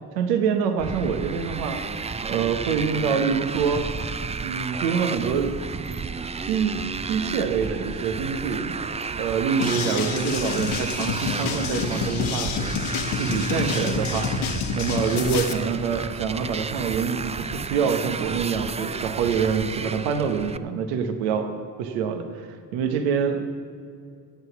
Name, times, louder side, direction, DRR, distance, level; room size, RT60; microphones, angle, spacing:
voice 1, 0.1-1.8 2.2-3.9 4.4-5.6 6.5-6.8 7.1-8.8 9.2-12.5 13.2-14.3 14.7-21.5 21.9-23.4, right 6 dB, 85° right, 7 dB, 1.1 m, -25 dB
Motorcycle, 0.8-20.6, right 5 dB, 15° right, 0.4 m, -32 dB
sound 1, 9.6-15.5, left 6 dB, 70° left, 1.4 m, -28 dB
16.5 x 8.2 x 5.8 m, 2.3 s
hypercardioid pair, 55°, 49 cm